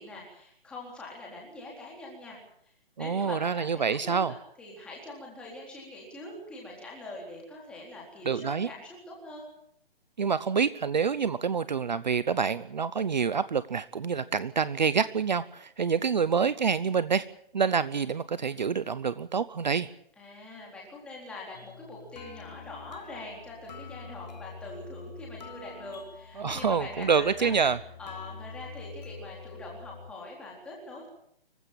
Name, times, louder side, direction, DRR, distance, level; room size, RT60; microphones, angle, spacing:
voice 1, 0.0-2.4 3.0-9.5 20.2-27.5 28.0-31.1, left 2 dB, 5° left, -3 dB, 3.8 m, -43 dB
voice 2, 3.0-4.3 8.2-8.7 10.2-17.3 17.5-19.9 26.4-27.8, right 6 dB, 50° right, 16 dB, 0.8 m, -27 dB
sound 1, 21.5-30.1, left 5 dB, 45° left, 1.0 m, -45 dB
25.5 x 15.5 x 8.9 m, 0.69 s
hypercardioid pair, 180°, 30 cm